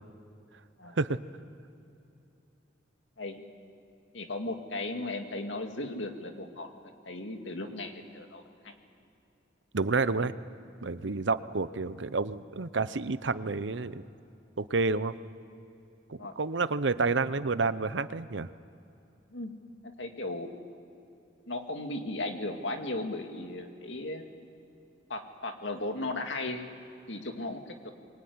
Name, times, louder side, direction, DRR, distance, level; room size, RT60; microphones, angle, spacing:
voice 1, 4.1-6.7 7.1-8.4 16.2-16.3 19.3-19.5 20.0-20.5 21.5-24.3 25.1-26.6 27.1-27.9, left 2 dB, 80° left, 4 dB, 2.3 m, -36 dB
voice 2, 9.7-10.3 10.8-14.0 14.6-15.1 16.1-18.5, right 3 dB, 75° right, 14 dB, 0.8 m, -29 dB
23.5 x 22.0 x 9.6 m, 2.8 s
head